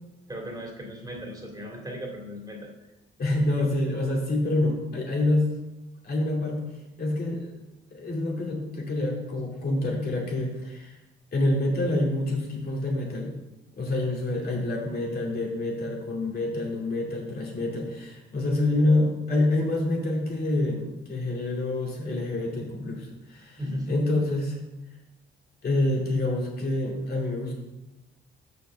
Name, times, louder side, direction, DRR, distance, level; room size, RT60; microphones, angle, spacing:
voice 1, 0.3-2.7 3.5-3.6 23.6-24.0, equal, 20° right, -1 dB, 2.4 m, -36 dB
voice 2, 3.2-5.5 6.0-6.6 7.0-7.5 7.9-11.0 11.3-13.3 13.7-23.6 23.9-24.6 25.6-27.5, left 2 dB, 50° left, -2 dB, 2.6 m, -27 dB
6.3 x 5.6 x 6.3 m, 0.99 s
cardioid pair, 90°, 20 cm